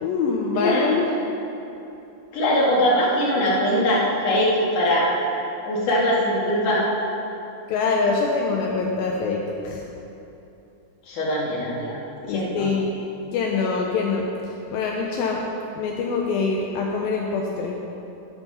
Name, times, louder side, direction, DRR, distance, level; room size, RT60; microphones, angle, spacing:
voice 1, 0.0-1.1 7.7-9.8 12.3-13.0 13.3-14.3 14.7-15.4 15.8-17.8, left 4 dB, 80° left, 0 dB, 2.4 m, -24 dB
voice 2, 0.6-0.9 2.3-5.1 5.7-6.9 11.1-12.0 12.3-12.7, equal, 60° left, -5 dB, 3.4 m, -21 dB
12.5 x 7.3 x 5.7 m, 2.9 s
omnidirectional pair, 4.4 m